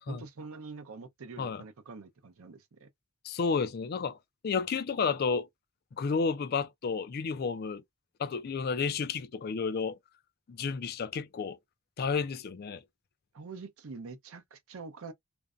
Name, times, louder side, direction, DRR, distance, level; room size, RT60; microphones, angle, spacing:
voice 1, 0.1-2.9 13.3-15.1, right 4 dB, 70° right, 0.6 m, -45 dB
voice 2, 3.2-4.2 4.4-5.5 5.9-7.8 8.2-10.0 10.5-11.6 12.0-12.8, left 5 dB, 45° left, 0.3 m, -31 dB
2.5 x 2.1 x 2.3 m
head